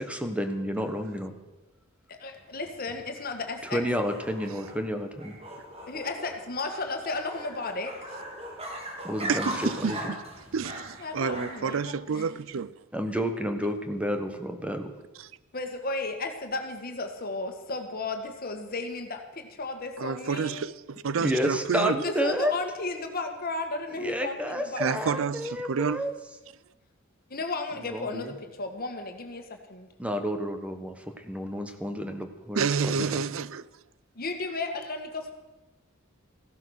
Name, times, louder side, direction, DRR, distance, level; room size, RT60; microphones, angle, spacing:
voice 1, 0.0-1.3 3.6-5.3 9.0-10.1 12.9-14.9 21.2-22.5 24.0-26.1 27.8-28.3 30.0-33.2, equal, 5° right, 1.3 m, -30 dB
voice 2, 2.1-3.8 5.9-8.0 11.0-12.2 15.5-20.7 22.0-25.3 27.3-29.9 34.2-35.3, left 3 dB, 45° left, 1.8 m, -34 dB
sound 1, 2.4-11.8, right 1 dB, 30° right, 2.8 m, -40 dB
voice 3, 9.3-10.2 10.5-10.9 11.1-12.8 15.2-15.3 20.0-22.0 24.8-26.1 32.5-33.7, right 6 dB, 75° right, 0.5 m, -29 dB
15.5 x 12.0 x 6.6 m
head